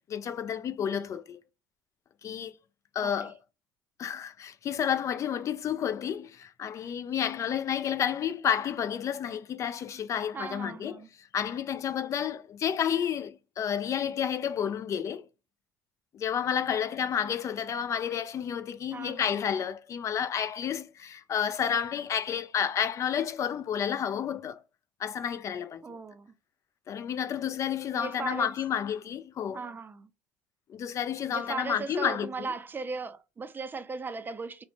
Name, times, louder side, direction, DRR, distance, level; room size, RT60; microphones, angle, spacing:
voice 1, 0.0-1.4 2.2-2.5 2.9-3.4 4.0-11.0 11.3-15.2 16.1-24.6 25.0-26.0 26.9-29.6 30.7-32.5, left 8 dB, 40° left, 0.3 m, -30 dB
voice 2, 3.0-3.3 10.3-11.1 16.7-16.8 18.9-19.4 25.8-26.3 27.9-28.5 29.5-30.1 31.3-34.6, right 4 dB, 25° right, 0.4 m, -38 dB
2.6 x 2.1 x 2.9 m
hypercardioid pair, 70°, 8 cm